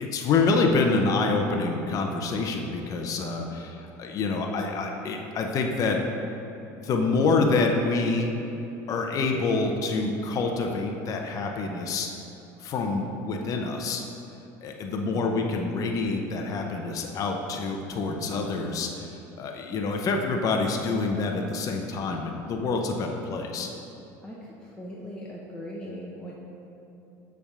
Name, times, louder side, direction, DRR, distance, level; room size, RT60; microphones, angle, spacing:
voice 1, 0.0-6.0 6.8-8.3 8.9-12.1 12.6-14.0 14.6-23.7, left 3 dB, 45° left, 2 dB, 0.7 m, -27 dB
voice 2, 15.0-15.4 24.2-26.3, equal, 10° left, -5 dB, 0.8 m, -39 dB
7.0 x 3.5 x 5.4 m, 2.9 s
supercardioid pair, 105°, 8 cm